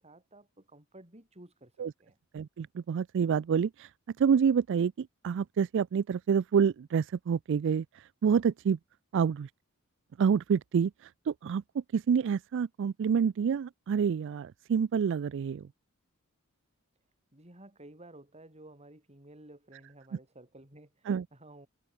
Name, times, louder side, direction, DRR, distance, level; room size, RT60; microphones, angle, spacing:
voice 1, 0.0-1.7 2.0-2.2 17.3-21.7, right 1 dB, 30° right, 6.5 m, -53 dB
voice 2, 2.3-3.9 4.2-8.8 9.1-9.5 10.2-15.7 21.1-21.3, right 7 dB, 55° right, 0.3 m, -28 dB
head